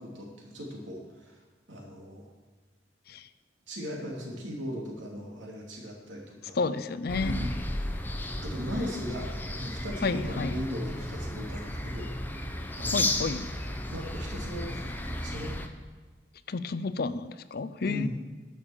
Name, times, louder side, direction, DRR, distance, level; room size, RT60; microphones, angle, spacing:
voice 1, 0.0-1.4 1.7-2.3 3.7-6.8 7.2-7.5 8.4-12.1 12.7-13.6 13.9-15.5 17.8-18.1, equal, 80° right, -1 dB, 2.8 m, -38 dB
voice 2, 6.6-7.4 10.0-10.6 12.9-13.5 16.5-18.1, left 4 dB, 55° left, 13 dB, 0.5 m, -31 dB
sound 1, 7.1-15.7, left 1 dB, 10° left, 0.7 m, -34 dB
11.0 x 7.0 x 7.2 m, 1.4 s
head